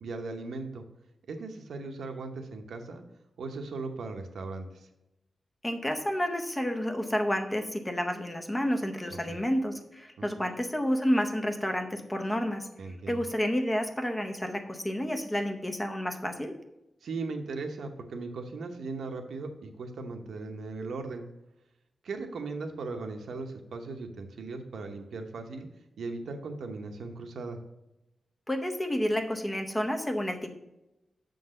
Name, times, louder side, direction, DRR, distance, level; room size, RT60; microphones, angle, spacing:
voice 1, 0.0-0.8 1.3-3.0 3.4-4.9 9.1-9.4 10.2-10.3 12.8-13.2 17.0-21.2 22.0-25.7 26.0-27.6, right 3 dB, 85° right, 5 dB, 0.9 m, -38 dB
voice 2, 5.6-16.5 28.5-30.5, equal, 15° left, 5 dB, 0.7 m, -30 dB
6.9 x 3.9 x 6.5 m, 0.91 s
wide cardioid pair, 165°, 0 cm